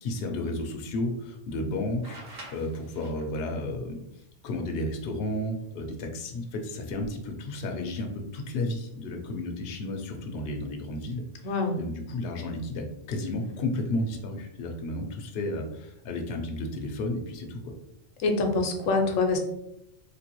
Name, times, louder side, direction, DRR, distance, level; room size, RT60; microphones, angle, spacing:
voice 1, 0.0-4.0 4.4-11.2 11.8-17.7, left 1 dB, 60° left, 2 dB, 0.8 m, -32 dB
sound 1, 2.0-3.5 5.5-5.6 6.7-7.1, right 1 dB, 55° right, 0.9 m, -46 dB
voice 2, 11.4-11.8 18.2-19.4, left 3 dB, 90° left, 3 dB, 1.0 m, -25 dB
3.3 x 3.0 x 2.9 m, 0.80 s
omnidirectional pair, 1.3 m